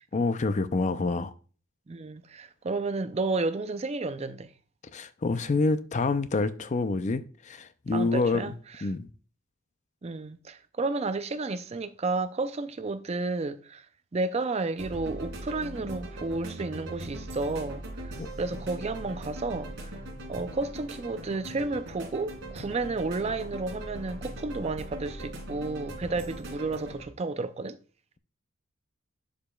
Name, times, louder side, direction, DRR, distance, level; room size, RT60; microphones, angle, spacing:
voice 1, 0.1-1.3 4.9-8.5 8.8-9.1 18.2-18.3, left 3 dB, 35° left, 0.4 m, -27 dB
voice 2, 1.9-4.5 7.9-8.9 10.0-13.9 14.1-19.9 20.3-27.8, right 3 dB, 30° right, 0.4 m, -32 dB
sound 1, 14.8-27.0, right 1 dB, 60° right, 3.0 m, -40 dB
11.5 x 5.0 x 2.3 m
head